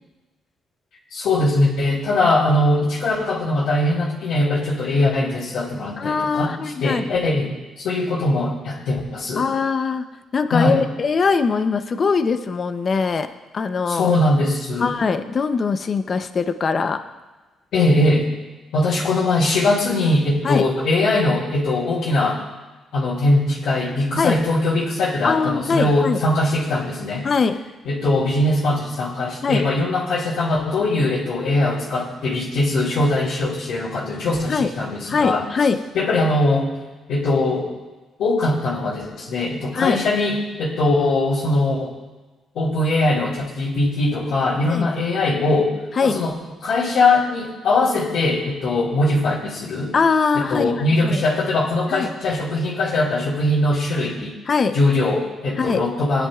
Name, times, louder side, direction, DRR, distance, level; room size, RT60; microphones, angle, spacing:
voice 1, 1.1-6.5 6.8-7.5 7.8-9.5 10.5-10.8 13.9-14.9 17.7-18.3 18.7-22.4 22.9-27.3 27.9-35.4 35.9-36.7 37.1-37.7 38.2-41.9 42.5-45.7 46.0-46.3 46.6-49.9 50.3-54.3 54.7-56.3, left 2 dB, 75° left, -7 dB, 2.4 m, -21 dB
voice 2, 6.0-7.1 9.4-10.1 10.3-13.3 13.5-14.1 14.8-17.0 20.4-20.7 24.2-24.4 25.2-26.2 27.2-27.6 29.4-29.7 34.5-34.7 35.1-35.8 39.7-40.0 44.7-44.9 46.0-46.2 49.9-50.7 51.0-51.2 51.9-52.1 54.5-54.8 55.6-55.8, left 5 dB, 45° left, 9 dB, 0.7 m, -21 dB
18.5 x 9.8 x 2.4 m, 1.2 s
cardioid pair, 90°, 0 cm